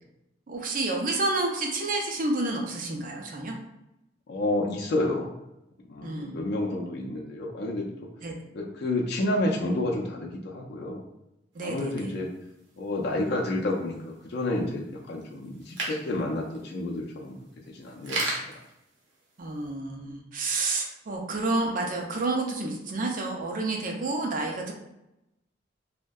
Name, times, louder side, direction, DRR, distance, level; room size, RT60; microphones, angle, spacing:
voice 1, 0.5-3.5 6.0-6.3 8.2-8.3 11.5-11.9 19.4-24.7, right 2 dB, 45° right, 1 dB, 0.5 m, -29 dB
voice 2, 4.3-5.3 5.9-8.1 8.5-11.0 11.6-12.3 12.8-17.3 17.7-18.6, left 2 dB, 60° left, -2 dB, 0.4 m, -30 dB
sound 1, 11.6-19.7, right 2 dB, 90° right, 0.7 m, -39 dB
2.6 x 2.1 x 2.2 m, 0.88 s
head